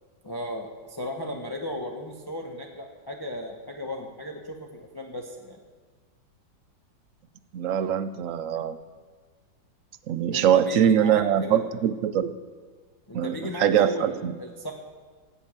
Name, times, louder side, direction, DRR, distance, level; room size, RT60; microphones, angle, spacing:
voice 1, 0.2-5.6 10.3-11.7 13.1-14.7, left 1 dB, 15° left, 1 dB, 1.0 m, -36 dB
voice 2, 7.5-8.8 10.1-12.4 13.1-14.3, right 9 dB, 65° right, 13 dB, 0.8 m, -23 dB
16.5 x 7.1 x 8.8 m, 1.5 s
omnidirectional pair, 1.9 m